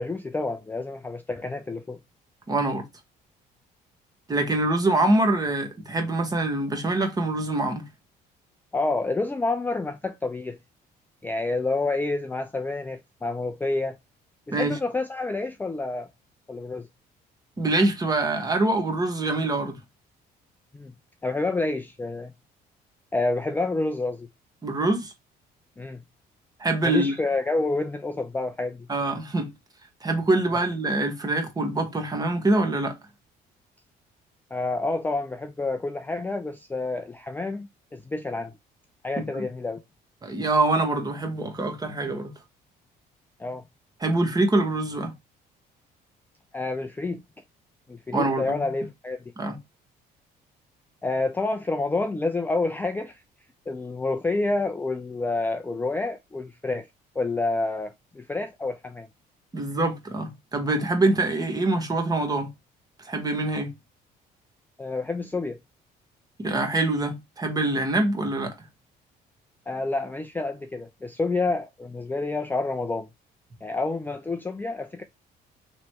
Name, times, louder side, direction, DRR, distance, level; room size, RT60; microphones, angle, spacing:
voice 1, 0.0-2.0 8.7-10.6 11.2-14.0 14.5-16.1 16.5-16.9 20.7-20.9 21.2-22.3 23.1-24.3 25.8-26.0 26.8-28.9 34.5-38.5 39.0-39.8 43.4-43.6 46.5-47.2 47.9-49.2 51.0-53.2 53.7-56.9 57.2-59.1 64.8-65.6 69.7-73.1 73.6-75.0, left 3 dB, 10° left, 0.4 m, -28 dB
voice 2, 2.5-2.8 4.3-7.9 14.5-14.8 17.6-19.8 24.6-25.1 26.6-27.1 28.9-29.5 30.0-33.0 39.2-39.4 40.2-42.3 44.0-45.1 48.1-48.6 49.4-49.6 59.5-62.5 63.0-63.7 66.4-68.5, right 2 dB, 20° right, 1.3 m, -24 dB
3.1 x 3.1 x 4.5 m
cardioid pair, 110°, 17 cm